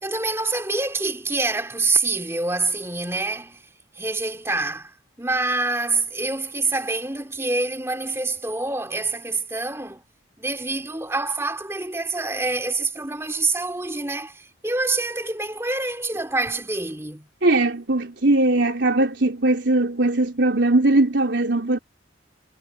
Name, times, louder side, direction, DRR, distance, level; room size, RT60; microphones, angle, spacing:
voice 1, 0.0-3.6 4.0-10.0 10.4-17.3, right 3 dB, 15° right, 2.9 m, -26 dB
voice 2, 17.4-21.8, right 2 dB, 70° right, 3.5 m, -20 dB
head